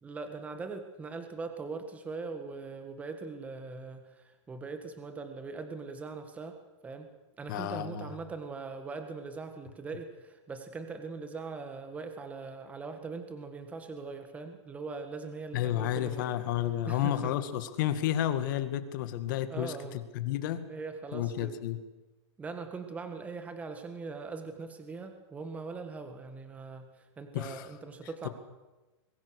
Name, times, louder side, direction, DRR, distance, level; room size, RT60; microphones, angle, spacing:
voice 1, 0.0-6.6 6.8-7.1 7.4-16.3 16.9-17.3 19.5-20.0 20.7-21.5 22.4-28.3, right 4 dB, 10° right, 7 dB, 1.7 m, -41 dB
voice 2, 7.5-8.2 15.5-20.7 21.1-21.8 27.3-27.7, left 11 dB, 45° left, 11 dB, 2.0 m, -31 dB
24.5 x 22.5 x 6.5 m, 1.1 s
hypercardioid pair, 160°, 15 cm